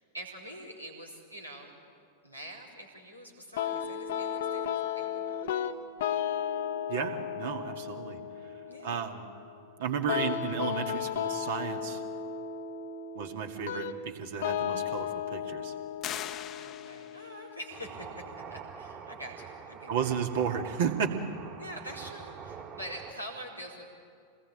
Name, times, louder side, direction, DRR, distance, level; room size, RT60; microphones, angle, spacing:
voice 1, 0.1-1.7 2.2-5.4 8.7-9.0 16.5-18.2 18.5-19.9 21.6-23.9, equal, 90° right, -2 dB, 4.4 m, -45 dB
sound 1, 3.6-18.5, left 9 dB, 55° left, 1.0 m, -35 dB
voice 2, 6.9-8.5 8.8-9.2 9.8-12.0 13.1-15.7 19.9-21.1, right 7 dB, 55° right, 4 dB, 2.3 m, -33 dB
sound 2, 16.0-17.4, left 10 dB, 30° left, 1.0 m, -40 dB
sound 3, 17.7-23.1, right 7 dB, 35° right, 2.8 m, -45 dB
27.0 x 20.0 x 8.9 m, 2.3 s
figure-of-eight pair, 90°, 0 cm